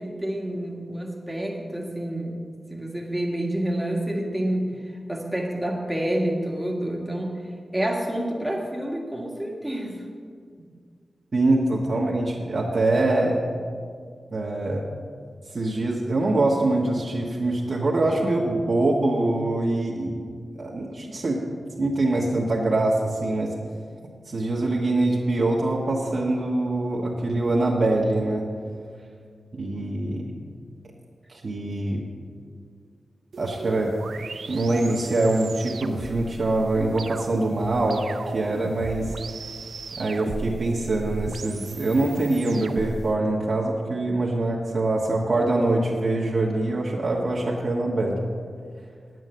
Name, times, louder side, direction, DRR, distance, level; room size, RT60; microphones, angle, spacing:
voice 1, 0.0-2.4 2.7-4.7 5.1-7.4 7.7-10.1 10.6-10.7, right 1 dB, 5° right, 0 dB, 1.6 m, -28 dB
voice 2, 11.3-13.4 14.3-14.8 15.5-20.2 20.6-21.4 21.8-23.5 24.3-28.5 29.5-30.2 31.3-32.0 33.4-33.9 34.5-39.2 40.0-48.2, right 2 dB, 45° right, -3 dB, 1.3 m, -24 dB
sound 1, 33.3-43.1, right 4 dB, 75° right, 0.5 m, -37 dB
10.0 x 9.3 x 6.7 m, 2.1 s
wide cardioid pair, 145°, 0 cm